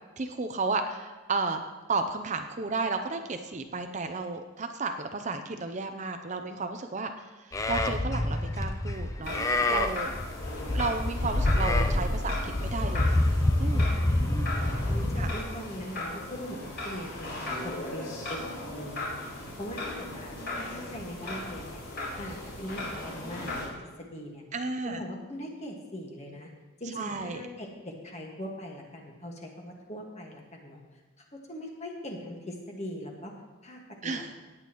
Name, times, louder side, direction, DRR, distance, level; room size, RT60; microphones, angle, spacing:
voice 1, 0.2-1.6 1.9-10.1 10.7-13.2 13.6-13.9 15.2-15.3 24.5-25.0 26.9-27.5 34.0-34.3, right 3 dB, 35° right, 6 dB, 0.6 m, -33 dB
Livestock farm animals working animals, 7.5-15.4, left 1 dB, 15° left, 0.4 m, -27 dB
sound 1, 9.2-23.7, left 2 dB, 45° left, 4.1 m, -37 dB
voice 2, 13.7-14.5 14.9-19.2 19.6-21.8 22.2-23.7 24.0-24.4 24.8-26.5 26.8-30.8 31.3-33.3 33.6-34.3, equal, 30° left, 0 dB, 1.6 m, -41 dB
17.5 x 8.8 x 3.0 m, 1.3 s
head